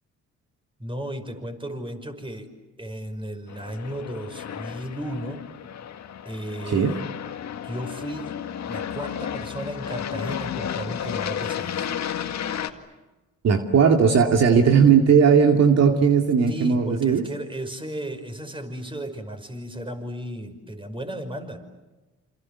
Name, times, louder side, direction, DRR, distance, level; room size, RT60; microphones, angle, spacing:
voice 1, 0.8-2.5 2.8-5.4 6.2-7.0 7.6-8.3 8.7-11.9 16.5-21.6, equal, 15° right, 7 dB, 5.5 m, -34 dB
Aircraft, 3.5-12.7, left 9 dB, 65° left, 2.1 m, -32 dB
voice 2, 13.4-17.2, right 6 dB, 60° right, 3 dB, 2.4 m, -17 dB
28.0 x 27.5 x 7.3 m, 1.1 s
cardioid pair, 90°, 30 cm